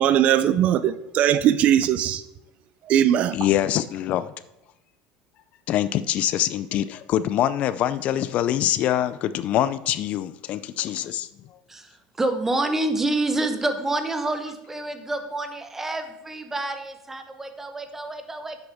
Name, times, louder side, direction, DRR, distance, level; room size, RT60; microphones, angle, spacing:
voice 1, 0.0-2.2 2.9-3.4, right 10 dB, 45° right, 0.4 m, -20 dB
voice 2, 3.3-4.3 5.7-11.6, left 12 dB, 45° left, 0.4 m, -24 dB
voice 3, 12.2-18.6, right 2 dB, 10° right, 1.0 m, -28 dB
10.5 x 7.9 x 3.5 m
cardioid pair, 140°, 3 cm